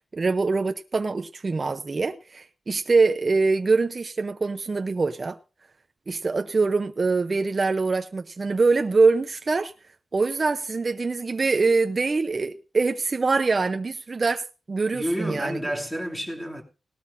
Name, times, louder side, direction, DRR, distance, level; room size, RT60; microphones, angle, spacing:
voice 1, 0.0-5.4 6.1-9.7 10.1-15.6, right 4 dB, 35° right, 0.7 m, -24 dB
voice 2, 14.9-16.6, equal, 5° left, 2.6 m, -30 dB
19.0 x 12.5 x 2.6 m
wide cardioid pair, 120°, 0 cm